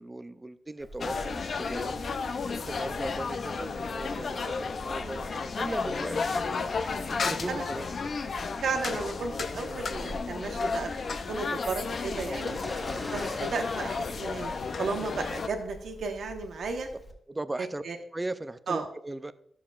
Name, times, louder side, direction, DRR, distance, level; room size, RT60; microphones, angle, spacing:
voice 1, 0.0-6.7 7.0-7.9 11.8-11.9 13.2-13.4 17.3-17.8 18.1-19.3, right 2 dB, 15° right, 13 dB, 0.4 m, -38 dB
Fowl, 0.8-17.1, equal, 20° left, 1.6 m, -44 dB
sound 1, 1.0-15.5, left 4 dB, 45° left, 0.5 m, -33 dB
voice 2, 8.6-12.6 13.1-14.5 14.8-16.9 17.8-18.0 18.7-18.9, right 4 dB, 65° right, 4 dB, 1.1 m, -34 dB
13.5 x 7.1 x 2.4 m, 0.69 s
wide cardioid pair, 160°, 0 cm